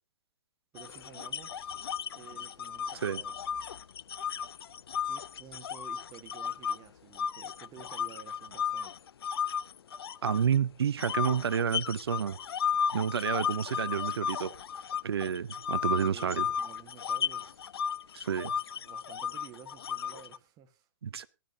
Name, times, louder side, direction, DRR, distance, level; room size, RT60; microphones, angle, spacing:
voice 1, 0.7-1.8 2.1-3.4 5.0-9.0 15.8-17.7 18.3-20.9, right 10 dB, 25° right, 1.4 m, -52 dB
sound 1, 0.8-6.8 7.1-10.6 11.0-20.4, left 7 dB, 70° left, 0.5 m, -34 dB
voice 2, 10.2-12.4 12.9-14.5 15.0-16.4 18.1-18.5 21.0-21.3, right 7 dB, 70° right, 0.6 m, -30 dB
18.0 x 12.0 x 2.7 m
figure-of-eight pair, 120°, 14 cm